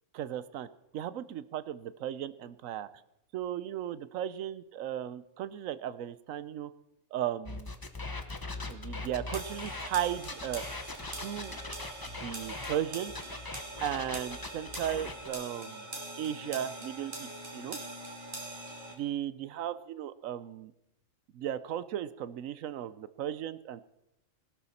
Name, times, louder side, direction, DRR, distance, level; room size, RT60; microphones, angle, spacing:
voice 1, 0.1-0.7 0.9-2.9 3.3-6.7 7.1-7.7 8.7-10.6 11.1-11.6 12.1-13.1 13.8-15.9 16.2-17.8 18.9-20.7 21.3-23.8, right 10 dB, 85° right, 16 dB, 1.1 m, -36 dB
sound 1, 7.5-12.8 13.1-15.3, left 3 dB, 20° left, 0.8 m, -40 dB
sound 2, 9.3-18.9, right 1 dB, 40° right, 2.7 m, -43 dB
19.0 x 12.0 x 4.2 m, 0.86 s
omnidirectional pair, 1.3 m